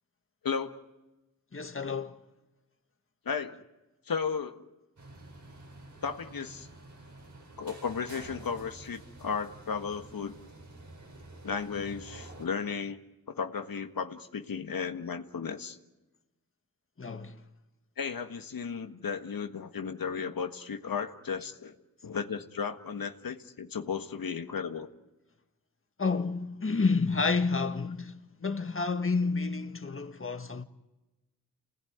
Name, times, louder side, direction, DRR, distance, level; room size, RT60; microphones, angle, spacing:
voice 1, 0.4-0.8 3.2-3.6 4.0-4.7 6.0-6.7 7.6-10.4 11.4-13.0 13.3-15.8 18.0-21.7 22.0-24.9, left 6 dB, 75° left, 1.7 m, -34 dB
voice 2, 1.5-2.2 17.0-17.4 26.0-30.6, left 4 dB, 40° left, 1.8 m, -30 dB
sound 1, 5.0-12.5, right 2 dB, 55° right, 4.5 m, -49 dB
29.0 x 19.5 x 9.5 m
cardioid pair, 55°, 35 cm